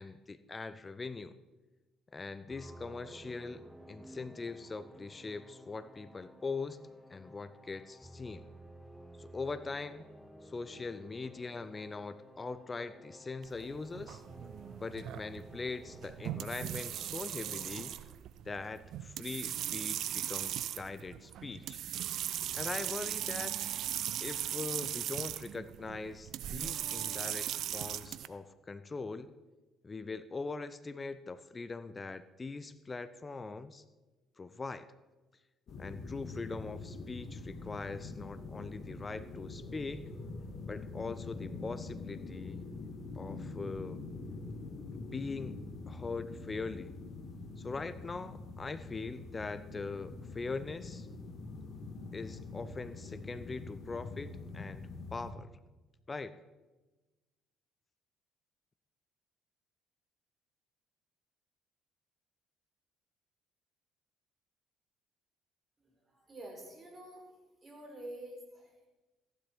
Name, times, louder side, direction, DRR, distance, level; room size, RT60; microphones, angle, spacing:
voice 1, 0.0-1.4 2.1-6.8 7.1-8.5 9.2-10.0 10.4-14.2 14.8-18.0 18.5-21.8 22.5-23.7 24.2-29.3 29.8-33.8 34.4-34.9 35.8-40.1 40.7-42.6 43.2-44.0 44.9-45.5 45.9-47.0 47.6-51.1 52.1-55.5 56.1-56.4, left 3 dB, 30° left, 14 dB, 0.7 m, -41 dB
sound 1, 2.5-17.9, right 1 dB, 5° right, 1.3 m, -54 dB
sound 2, 13.4-28.3, right 11 dB, 60° right, 0.5 m, -38 dB
sound 3, 35.7-55.3, left 3 dB, 50° left, 1.7 m, -44 dB
voice 2, 65.8-67.3 67.6-68.9, right 1 dB, 30° right, 0 dB, 4.4 m, -48 dB
15.0 x 10.5 x 4.5 m, 1.2 s
hypercardioid pair, 50°, 0 cm